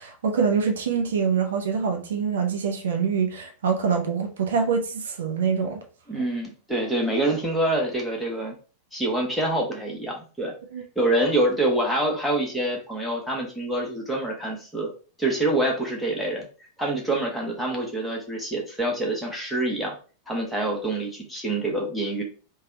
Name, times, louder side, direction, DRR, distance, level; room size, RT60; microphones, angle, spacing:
voice 1, 0.0-5.8 6.1-6.3 10.7-10.8, right 6 dB, 65° right, 0.6 m, -25 dB
voice 2, 6.1-8.5 8.9-10.5 11.0-14.9 15.2-16.4 16.8-19.9 20.3-22.2, right 1 dB, ahead, 1.1 m, -26 dB
3.3 x 2.2 x 3.9 m
figure-of-eight pair, 90°, 0 cm